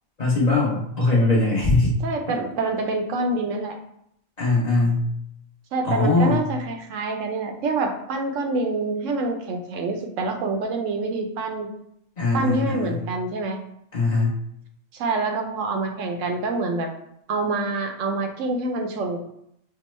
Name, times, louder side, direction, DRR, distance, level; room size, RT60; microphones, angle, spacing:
voice 1, 0.2-1.9 4.4-5.0 5.8-6.4 12.2-13.0 13.9-14.3, left 2 dB, 40° left, -4 dB, 0.8 m, -21 dB
voice 2, 2.0-3.8 5.7-11.7 12.3-13.6 14.9-16.9 17.3-19.2, right 3 dB, 75° right, 4 dB, 0.9 m, -26 dB
5.9 x 2.1 x 3.0 m, 0.74 s
omnidirectional pair, 1.3 m